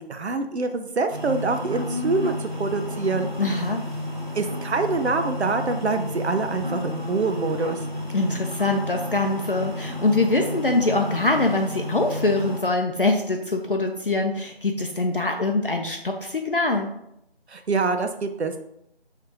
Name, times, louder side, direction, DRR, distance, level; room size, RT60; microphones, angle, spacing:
voice 1, 0.1-3.3 4.3-7.8 17.5-18.6, right 4 dB, 90° right, 8 dB, 0.5 m, -25 dB
sound 1, 1.1-12.6, left 1 dB, 50° right, 0.8 m, -31 dB
voice 2, 3.4-3.8 8.1-16.9, left 2 dB, 60° left, 3 dB, 0.5 m, -23 dB
5.1 x 3.2 x 3.2 m, 0.80 s
figure-of-eight pair, 170°, 32 cm